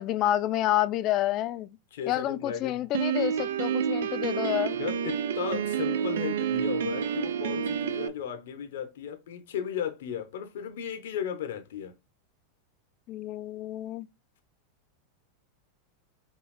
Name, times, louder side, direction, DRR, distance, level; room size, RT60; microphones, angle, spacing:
voice 1, 0.0-1.8 2.1-4.8 13.1-14.1, left 13 dB, 45° left, 0.5 m, -29 dB
voice 2, 1.9-2.8 4.7-12.0, left 9 dB, 75° left, 0.8 m, -35 dB
Piano, 2.9-8.1, right 8 dB, 80° right, 0.4 m, -29 dB
5.3 x 2.4 x 3.2 m
hypercardioid pair, 115°, 0 cm